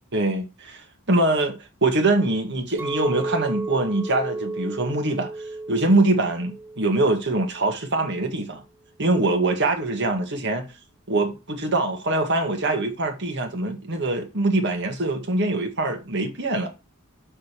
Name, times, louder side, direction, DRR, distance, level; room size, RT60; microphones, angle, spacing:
voice 1, 0.1-5.3 5.7-8.6 9.0-10.7 11.1-16.7, right 2 dB, 55° right, 1.9 m, -23 dB
Chink clink, 2.8-7.1 7.5-7.9, right 2 dB, 10° right, 0.5 m, -33 dB
6.4 x 5.4 x 6.8 m
head